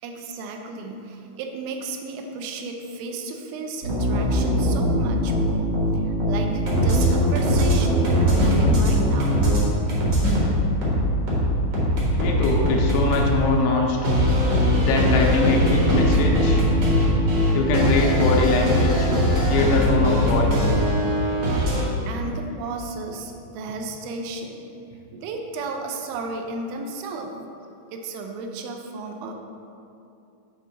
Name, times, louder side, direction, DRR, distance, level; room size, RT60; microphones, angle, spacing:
voice 1, 0.0-9.5 22.1-24.6 25.1-27.3 27.9-29.3, right 3 dB, 85° right, 3 dB, 3.0 m, -33 dB
sound 1, 3.8-9.6 9.9-13.3 14.0-21.8, equal, 65° right, 1.5 m, -20 dB
voice 2, 12.2-14.0 14.8-16.7 17.5-19.1 19.5-20.7, left 3 dB, 90° left, 0 dB, 3.2 m, -23 dB
8.0 x 3.7 x 5.6 m, 2.7 s
omnidirectional pair, 5.4 m